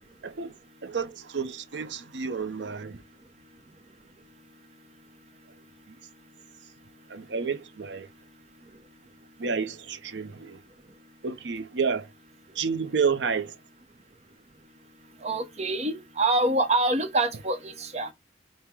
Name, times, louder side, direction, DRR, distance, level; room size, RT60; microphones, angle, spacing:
voice 1, 0.8-3.0 7.1-8.1 9.4-10.6 11.2-12.1 12.6-13.5, right 5 dB, 75° right, 0.7 m, -30 dB
voice 2, 15.2-18.1, right 2 dB, 35° right, 0.8 m, -26 dB
5.4 x 2.1 x 4.4 m
head